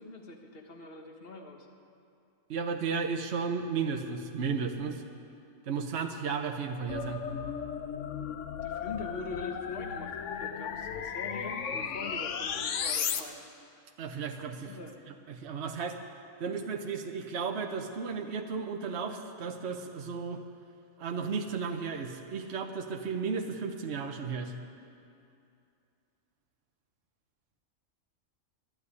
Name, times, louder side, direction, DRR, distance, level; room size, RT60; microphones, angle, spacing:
voice 1, 0.0-1.7 8.6-13.4 14.6-14.9, left 3 dB, 45° left, 2 dB, 1.6 m, -43 dB
voice 2, 2.5-5.0 5.7-7.2 14.0-14.8 15.3-16.0 16.4-20.4 21.0-24.5, right 5 dB, 55° right, 4 dB, 1.1 m, -34 dB
sound 1, 6.9-13.2, left 7 dB, 70° left, 1.1 m, -35 dB
12.5 x 11.5 x 9.7 m, 2.6 s
omnidirectional pair, 1.4 m